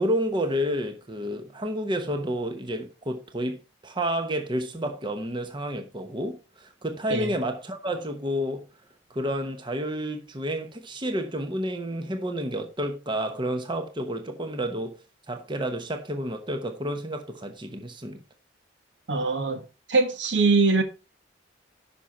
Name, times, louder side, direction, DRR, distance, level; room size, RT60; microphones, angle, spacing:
voice 1, 0.0-3.6 3.8-8.6 9.1-14.9 15.3-18.2, equal, 25° right, 1.0 m, -30 dB
voice 2, 19.1-19.6 19.9-20.8, right 3 dB, 70° right, 1.4 m, -22 dB
10.0 x 5.9 x 4.2 m
head